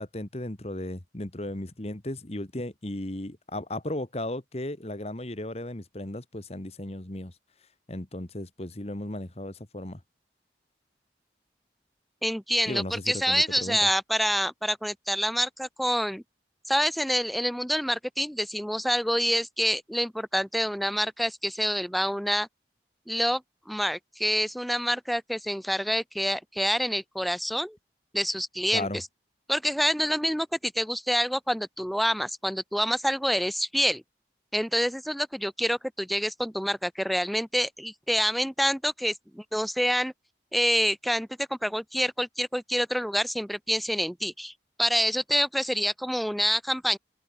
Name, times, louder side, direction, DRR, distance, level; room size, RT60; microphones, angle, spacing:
voice 1, 0.0-7.3 7.9-10.0 12.7-13.8 28.7-29.0, left 1 dB, 35° left, 1.6 m, -35 dB
voice 2, 12.2-16.2 16.7-22.5 23.1-27.8 28.1-29.1 29.5-34.0 34.5-40.1 40.5-44.5 44.8-47.0, equal, ahead, 2.2 m, -27 dB
open air
head